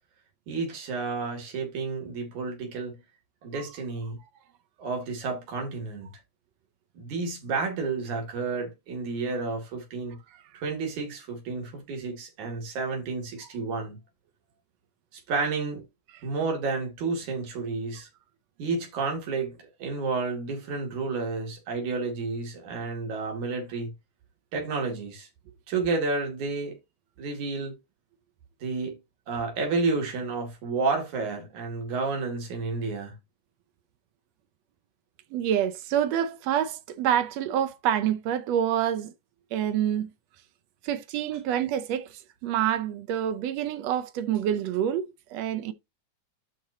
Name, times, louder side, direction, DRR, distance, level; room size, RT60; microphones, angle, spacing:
voice 1, 0.5-3.0 3.4-4.2 4.8-6.1 7.0-10.2 10.5-14.0 15.1-15.8 16.2-18.1 18.6-23.9 24.5-25.3 25.7-26.7 27.2-27.7 28.6-29.0 29.3-33.1, right 4 dB, 90° right, 3.9 m, -31 dB
voice 2, 35.3-39.1 39.5-40.1 40.8-42.1 42.4-45.7, right 10 dB, 75° right, 1.7 m, -27 dB
12.0 x 4.3 x 2.8 m
omnidirectional pair, 3.3 m